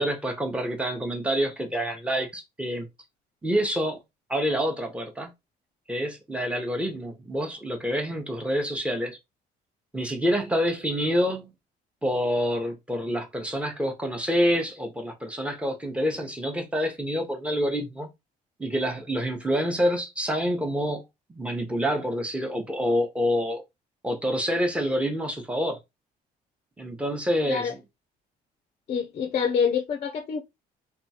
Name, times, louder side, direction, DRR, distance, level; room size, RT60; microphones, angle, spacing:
voice 1, 0.0-2.9 3.4-4.0 4.3-5.3 5.9-9.2 9.9-11.5 12.0-18.1 18.6-21.0 21.3-23.6 24.0-25.8 26.8-27.8, equal, 5° right, 0.7 m, -27 dB
voice 2, 28.9-30.4, left 6 dB, 35° left, 0.4 m, -26 dB
2.9 x 2.3 x 2.7 m
cardioid pair, 110°, 17 cm